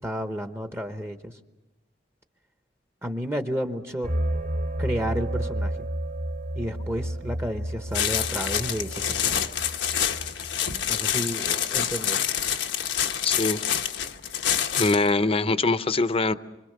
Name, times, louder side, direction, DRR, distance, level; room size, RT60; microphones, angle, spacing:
voice 1, 0.0-1.4 3.0-4.1 4.8-5.9 6.6-9.5 10.9-12.2, equal, 15° right, 7 dB, 0.9 m, -31 dB
sound 1, 4.0-10.6, right 1 dB, 50° right, 3.1 m, -31 dB
sound 2, 7.9-15.1, left 9 dB, 90° left, 1.2 m, -27 dB
voice 2, 13.2-13.6 14.7-16.3, left 3 dB, 35° left, 13 dB, 0.7 m, -23 dB
26.0 x 25.0 x 6.6 m, 1.1 s
head